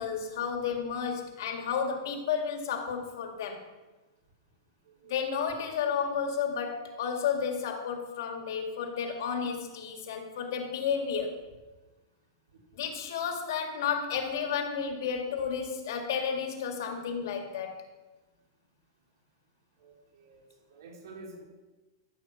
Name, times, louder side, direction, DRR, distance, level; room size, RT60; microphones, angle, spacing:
voice 1, 0.0-3.6 5.1-11.5 12.7-17.8, left 7 dB, 60° left, 3 dB, 2.0 m, -32 dB
voice 2, 19.8-20.4 20.7-21.4, right 2 dB, 65° right, -2 dB, 3.0 m, -49 dB
13.5 x 7.0 x 5.8 m, 1.2 s
supercardioid pair, 175°, 2 cm